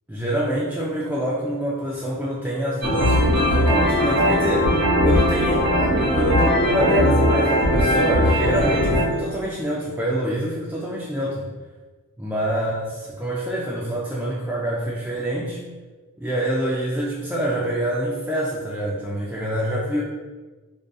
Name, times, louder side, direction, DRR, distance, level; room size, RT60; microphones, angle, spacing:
voice 1, 0.1-11.5 12.2-15.6 16.2-20.0, right 1 dB, 5° right, -7 dB, 0.3 m, -26 dB
sound 1, 2.8-9.0, equal, 90° right, 1.1 m, -19 dB
2.5 x 2.3 x 2.3 m, 1.3 s
wide cardioid pair, 80°, 36 cm